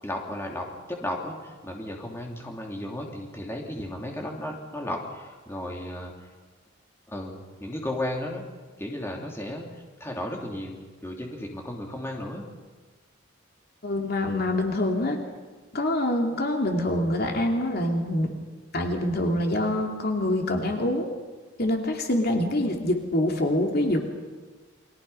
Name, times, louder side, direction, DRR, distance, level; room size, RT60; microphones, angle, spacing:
voice 1, 0.0-6.3 7.1-8.4 8.8-12.5, left 1 dB, 10° left, 0 dB, 3.0 m, -34 dB
voice 2, 13.8-15.2 15.7-18.3 18.7-21.1 21.6-24.0, left 1 dB, 50° left, 2 dB, 2.7 m, -25 dB
29.5 x 23.5 x 5.7 m, 1.3 s
head